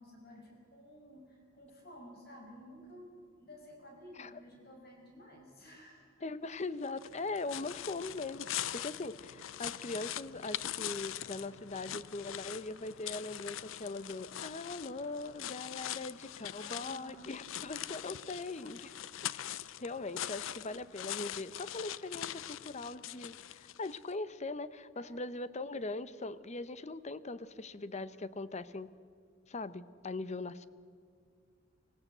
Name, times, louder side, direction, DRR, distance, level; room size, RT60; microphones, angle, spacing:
voice 1, 0.0-6.3 8.7-9.0 16.5-17.5 24.9-25.2, equal, 55° left, 1 dB, 5.6 m, -54 dB
voice 2, 6.2-28.9 29.5-30.6, left 3 dB, 35° left, 15 dB, 0.7 m, -41 dB
sound 1, 6.8-24.0, left 12 dB, 85° left, 0.5 m, -42 dB
25.0 x 16.5 x 7.9 m, 2.2 s
head